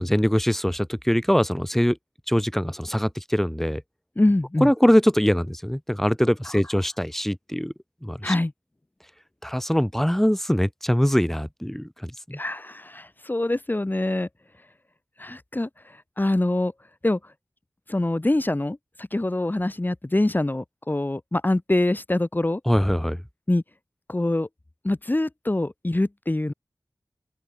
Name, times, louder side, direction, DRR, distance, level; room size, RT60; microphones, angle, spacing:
voice 1, 0.0-2.0 2.3-3.8 4.6-7.7 8.0-8.3 9.4-12.4 22.7-23.2, equal, 5° left, 1.4 m, -22 dB
voice 2, 4.2-4.7 8.2-8.5 12.4-14.3 15.2-16.7 17.0-17.2 17.9-22.6 23.5-23.6 24.1-24.5 24.8-26.5, left 1 dB, 25° left, 1.9 m, -24 dB
open air
wide cardioid pair, 70°, 7 cm